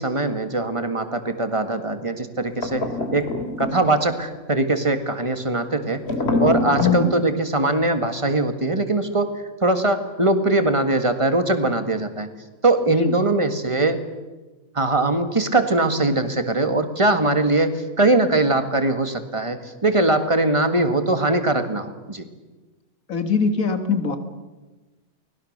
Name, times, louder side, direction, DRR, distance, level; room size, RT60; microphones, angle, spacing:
voice 1, 0.0-2.9 3.1-3.3 3.6-6.0 6.4-12.3 12.6-14.0 14.7-22.3, right 2 dB, 20° right, 8 dB, 1.9 m, -21 dB
sound 1, 2.6-4.1 6.0-7.0, left 2 dB, 50° left, 3.0 m, -24 dB
voice 2, 6.8-7.1 12.9-13.1 23.1-24.2, left 4 dB, 80° left, 8 dB, 2.3 m, -21 dB
30.0 x 20.5 x 6.7 m, 1.2 s
omnidirectional pair, 1.4 m